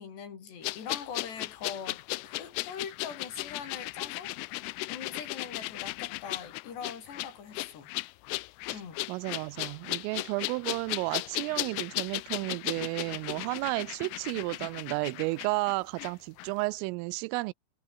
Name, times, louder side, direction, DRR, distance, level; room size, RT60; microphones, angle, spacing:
voice 1, 0.0-4.6 4.9-7.9 8.7-9.0, left 6 dB, 60° left, 6.2 m, -42 dB
sound 1, 0.6-16.1 16.4-16.5, left 22 dB, 90° left, 3.2 m, -36 dB
voice 2, 9.1-17.5, right 24 dB, 85° right, 3.2 m, -32 dB
omnidirectional pair, 5.8 m